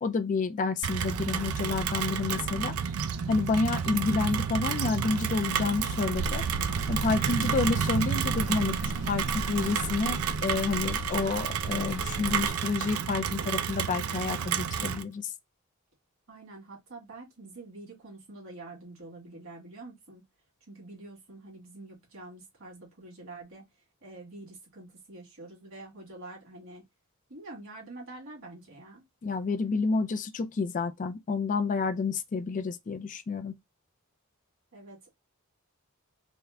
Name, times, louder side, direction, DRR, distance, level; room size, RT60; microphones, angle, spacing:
voice 1, 0.0-2.7 3.3-6.4 6.9-8.8 9.1-15.3 29.2-33.5, left 4 dB, 35° left, 0.3 m, -29 dB
Rain, 0.8-15.0, right 7 dB, 80° right, 0.4 m, -30 dB
sound 1, 6.1-12.5, equal, 55° left, 1.2 m, -39 dB
voice 2, 16.3-20.2 20.7-23.7 24.0-26.8 27.3-29.0 34.7-35.1, right 2 dB, 65° right, 1.9 m, -46 dB
3.6 x 2.1 x 3.4 m
head